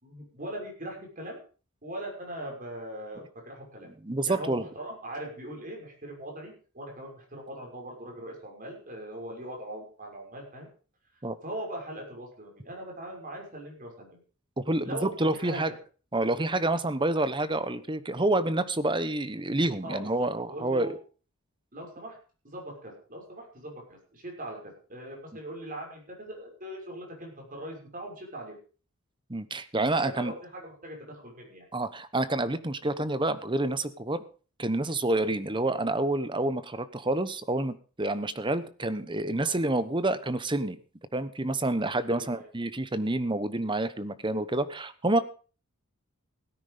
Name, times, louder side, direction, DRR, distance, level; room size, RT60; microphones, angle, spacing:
voice 1, 0.0-1.4 1.8-3.9 4.3-10.7 11.4-14.2 14.8-15.8 19.8-20.9 21.7-22.2 22.4-28.6 29.9-31.7 39.4-39.6 42.1-42.5, right 1 dB, 40° right, 0 dB, 6.3 m, -40 dB
voice 2, 4.0-4.7 11.2-11.4 14.6-15.7 16.1-20.9 29.3-30.3 31.7-34.2 34.6-40.8 41.1-45.2, right 2 dB, 20° right, 13 dB, 1.0 m, -28 dB
17.0 x 9.9 x 5.1 m, 0.38 s
head